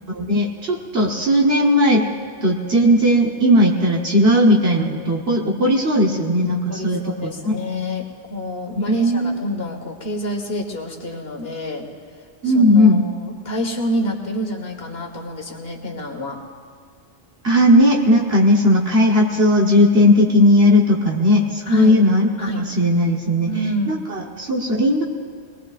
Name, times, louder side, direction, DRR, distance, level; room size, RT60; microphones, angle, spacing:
voice 1, 0.1-2.1 2.4-7.5 8.9-9.4 12.4-13.0 17.4-23.5 23.9-25.0, left 1 dB, 60° right, -2 dB, 1.5 m, -17 dB
voice 2, 6.7-11.9 12.4-16.4 21.7-22.0 22.4-22.7 23.5-24.0, equal, 60° left, 2 dB, 1.9 m, -27 dB
24.0 x 19.5 x 2.5 m, 2.1 s
omnidirectional pair, 1.2 m